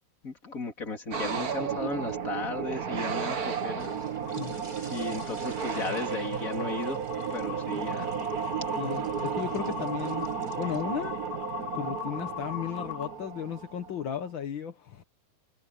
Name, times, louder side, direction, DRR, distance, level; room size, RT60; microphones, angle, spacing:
voice 1, 0.2-3.9 4.9-7.0 7.3-8.2, left 3 dB, 25° left, 3.4 m, -35 dB
sound 1, 1.1-14.1, right 7 dB, 85° right, 0.8 m, -33 dB
sound 2, 1.5-13.9, right 1 dB, 20° right, 7.4 m, -53 dB
sound 3, 4.3-4.4 5.0-13.1, left 25 dB, 80° left, 2.7 m, -41 dB
voice 2, 8.8-10.2 10.6-11.2 11.7-15.0, left 9 dB, 55° left, 1.3 m, -35 dB
omnidirectional pair, 4.2 m